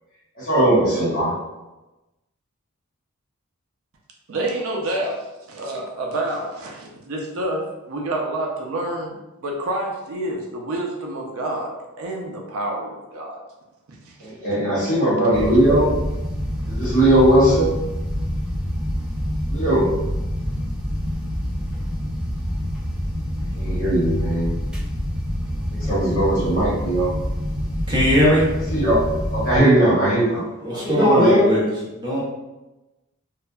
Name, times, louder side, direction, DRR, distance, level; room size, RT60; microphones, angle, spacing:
voice 1, 0.4-1.3 14.2-16.0 16.6-17.8 19.5-19.9 23.5-24.6 25.7-27.1 28.7-30.4 30.7-31.5, right 1 dB, 40° left, -9 dB, 1.2 m, -19 dB
voice 2, 4.3-13.4 14.0-14.3 15.3-15.5, right 1 dB, 65° right, 0 dB, 0.5 m, -28 dB
sound 1, 15.3-29.6, equal, 5° right, 0.3 m, -26 dB
voice 3, 27.9-28.5 30.6-31.6 31.9-32.2, equal, 20° right, -7 dB, 0.8 m, -19 dB
2.7 x 2.4 x 2.2 m, 1.0 s
head